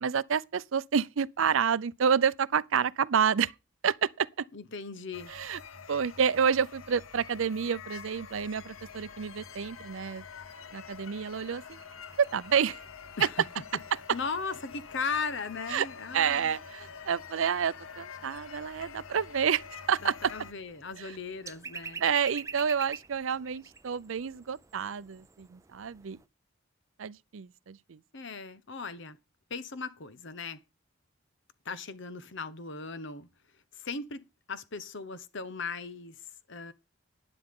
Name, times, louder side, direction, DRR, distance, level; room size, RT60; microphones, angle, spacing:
voice 1, 0.0-3.5 3.8-4.4 5.3-5.6 5.9-10.2 10.7-11.8 12.2-12.8 15.7-15.9 16.1-19.6 19.9-20.3 21.0-21.2 22.0-26.2 27.0-28.0, right 7 dB, 70° right, 0.5 m, -29 dB
voice 2, 4.5-5.3 13.2-13.4 14.1-16.5 20.0-22.0 28.1-29.2 29.5-30.6 31.6-33.3 33.7-36.2 36.5-36.7, left 4 dB, 60° left, 1.0 m, -37 dB
sound 1, 5.1-20.5, left 6 dB, 85° left, 0.9 m, -47 dB
sound 2, 8.5-26.3, right 5 dB, 15° right, 0.5 m, -50 dB
11.5 x 10.0 x 3.7 m
head